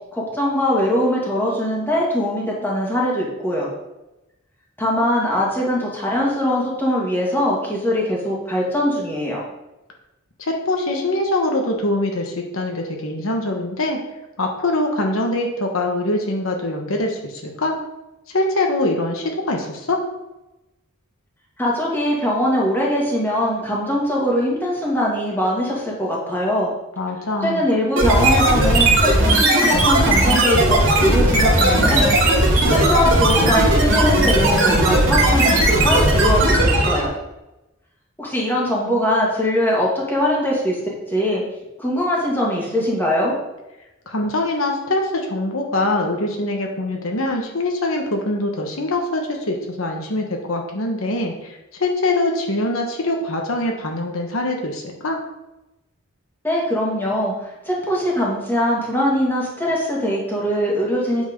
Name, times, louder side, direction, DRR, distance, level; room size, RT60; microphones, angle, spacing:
voice 1, 0.1-3.7 4.8-9.4 21.6-26.7 27.4-32.1 32.7-37.1 38.2-40.8 41.1-41.4 41.8-43.4 56.4-61.3, left 1 dB, 10° left, -4 dB, 1.9 m, -21 dB
voice 2, 10.4-14.0 14.4-17.8 18.3-20.0 27.0-27.7 44.1-55.2, left 2 dB, 70° left, 2 dB, 1.2 m, -23 dB
sound 1, 28.0-37.1, right 1 dB, 60° right, 2.3 m, -16 dB
8.4 x 4.5 x 5.2 m, 0.97 s
head